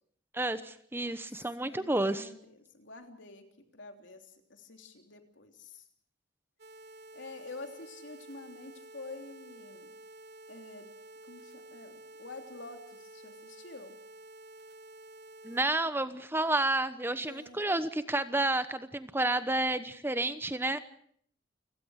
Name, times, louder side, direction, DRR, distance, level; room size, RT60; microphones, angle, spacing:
voice 1, 0.3-2.3 15.4-20.8, right 2 dB, 10° right, 12 dB, 0.9 m, -30 dB
voice 2, 1.6-3.5 3.7-5.8 7.1-9.9 10.5-10.9 11.2-14.0 17.2-17.6, left 3 dB, 70° left, 5 dB, 3.3 m, -48 dB
sound 1, 6.6-15.6, right 2 dB, 55° right, 1.7 m, -51 dB
29.5 x 17.0 x 6.5 m, 0.63 s
head